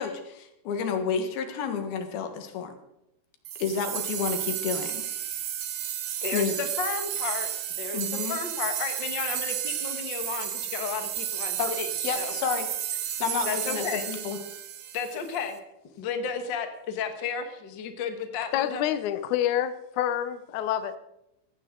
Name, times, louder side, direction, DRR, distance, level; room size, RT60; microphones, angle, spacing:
voice 1, 0.0-2.7 3.6-5.0 6.3-6.5 7.9-8.4 11.6-11.7 12.0-12.7 13.2-14.4, left 6 dB, 90° left, 6 dB, 3.4 m, -30 dB
sound 1, 3.4-15.5, right 10 dB, 65° right, 1.7 m, -32 dB
voice 2, 6.2-7.5 7.8-8.0 8.3-11.9 12.2-12.3 13.4-14.0 14.9-15.6 16.0-18.8, left 6 dB, 45° left, 6 dB, 1.5 m, -33 dB
voice 3, 18.5-21.0, left 11 dB, 70° left, 11 dB, 1.9 m, -27 dB
17.0 x 16.0 x 3.9 m, 0.85 s
omnidirectional pair, 4.2 m